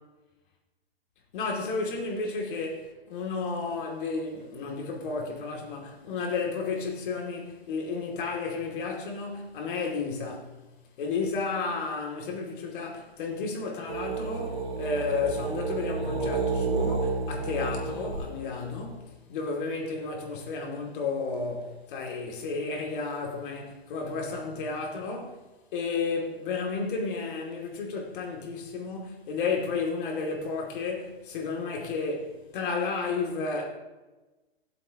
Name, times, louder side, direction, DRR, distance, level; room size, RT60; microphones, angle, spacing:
voice 1, 1.3-10.5 11.0-25.4 25.7-33.6, left 4 dB, 50° left, 2.6 m, -32 dB
sound 1, 13.9-19.0, right 4 dB, 80° right, 2.7 m, -31 dB
17.0 x 7.7 x 2.9 m
hypercardioid pair, 125°, 32 cm